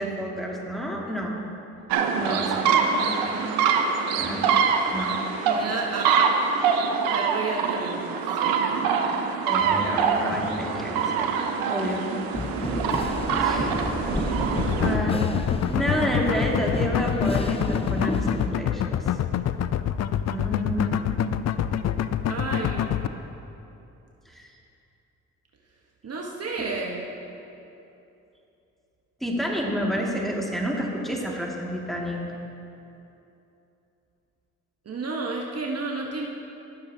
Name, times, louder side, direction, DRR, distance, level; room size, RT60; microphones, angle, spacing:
voice 1, 0.0-1.4 2.1-3.4 4.2-4.5 4.9-5.2 9.5-12.1 13.4-13.7 14.8-15.3 15.7-19.1 20.3-21.2 24.3-24.5 29.2-32.2, equal, ahead, -3 dB, 2.1 m, -30 dB
sound 1, 1.9-15.0, right 6 dB, 85° right, 0.7 m, -24 dB
voice 2, 5.5-6.2 7.0-8.9 13.4-13.8 22.3-23.0 26.0-27.1 34.8-36.2, right 3 dB, 45° right, 0 dB, 1.1 m, -32 dB
sound 2, 12.3-18.5, left 2 dB, 15° left, 0.8 m, -30 dB
sound 3, 14.6-23.1, left 10 dB, 50° left, 0.5 m, -26 dB
18.5 x 6.6 x 2.8 m, 2.9 s
hypercardioid pair, 50°, 34 cm